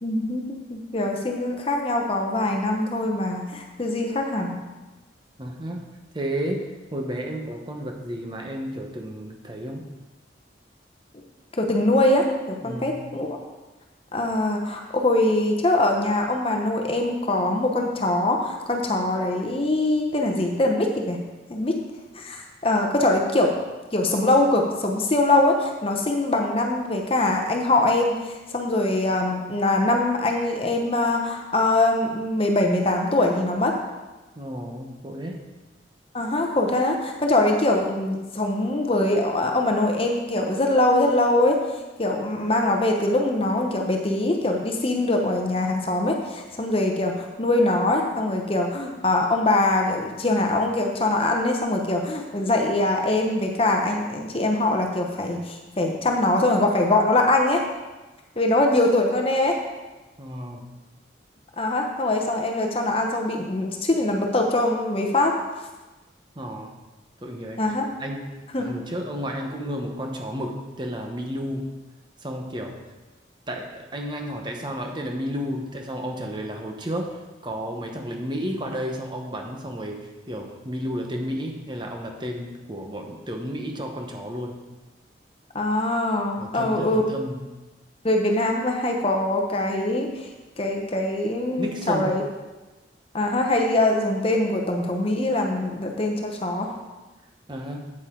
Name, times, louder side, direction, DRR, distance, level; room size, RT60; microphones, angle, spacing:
voice 1, 0.0-4.6 11.6-13.4 14.1-21.2 21.5-21.8 22.1-23.5 23.9-33.7 36.1-41.6 42.0-57.7 58.4-59.6 61.6-65.4 67.6-67.8 68.5-68.6 85.5-87.0 88.0-90.3 90.6-92.2 93.1-96.8, left 2 dB, 30° left, 2 dB, 0.9 m, -23 dB
voice 2, 5.4-9.8 12.6-13.0 34.4-35.5 60.2-60.7 66.4-66.8 67.2-71.7 72.2-72.8 73.5-84.6 86.4-87.6 91.6-92.2 97.5-97.9, equal, 25° right, 2 dB, 1.0 m, -32 dB
8.8 x 8.6 x 3.8 m, 1.2 s
head